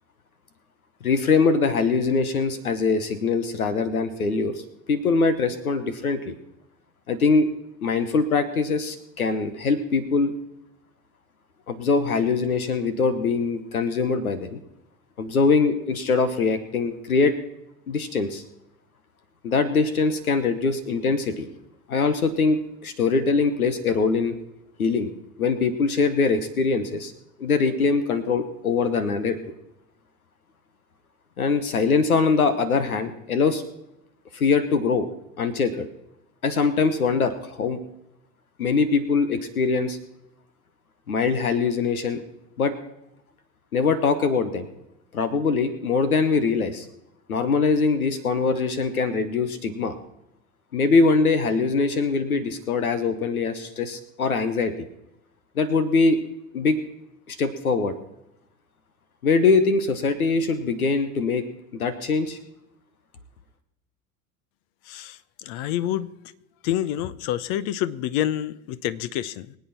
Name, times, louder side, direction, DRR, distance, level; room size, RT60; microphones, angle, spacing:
voice 1, 1.0-4.6 4.9-6.3 7.1-7.5 7.8-10.3 11.7-14.6 15.2-17.3 17.9-18.4 19.4-21.5 21.9-24.3 24.8-25.1 25.4-27.1 27.4-29.4 31.4-33.6 34.3-35.1 35.4-35.9 36.4-37.8 38.6-40.0 41.1-42.2 42.6-42.7 43.7-44.7 45.1-46.9 47.3-49.9 50.7-54.7 55.6-56.2 56.5-56.8 57.3-57.9 59.2-61.4 61.7-62.4, left 4 dB, 90° left, 1.3 m, -22 dB
voice 2, 64.8-66.1 66.6-69.6, left 12 dB, 55° left, 0.9 m, -28 dB
24.5 x 8.4 x 4.3 m
hypercardioid pair, 80°, 42 cm